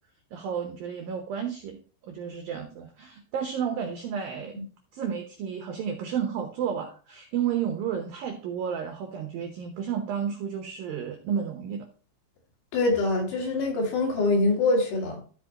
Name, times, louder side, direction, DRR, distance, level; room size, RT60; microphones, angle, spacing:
voice 1, 0.3-1.8 2.0-4.5 4.9-11.9, right 8 dB, 85° right, 5 dB, 2.0 m, -32 dB
voice 2, 12.7-15.2, left 2 dB, 60° left, -1 dB, 4.2 m, -24 dB
14.5 x 5.3 x 2.9 m, 0.39 s
omnidirectional pair, 5.7 m